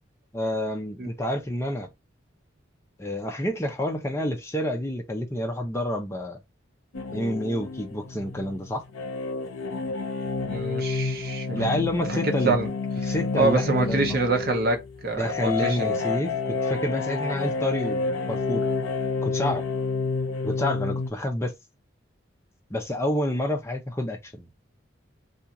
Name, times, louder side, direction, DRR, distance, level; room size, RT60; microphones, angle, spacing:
voice 1, 0.3-1.9 3.0-6.4 7.1-8.8 11.5-12.6 13.0-14.2 15.1-18.7 19.2-19.6 20.4-21.5 22.7-24.5, left 1 dB, 15° left, 0.5 m, -28 dB
sound 1, 6.9-21.1, left 4 dB, 90° left, 0.6 m, -29 dB
voice 2, 10.4-11.7 12.1-12.7 13.0-16.0, right 3 dB, 50° right, 0.7 m, -26 dB
2.5 x 2.4 x 2.8 m
head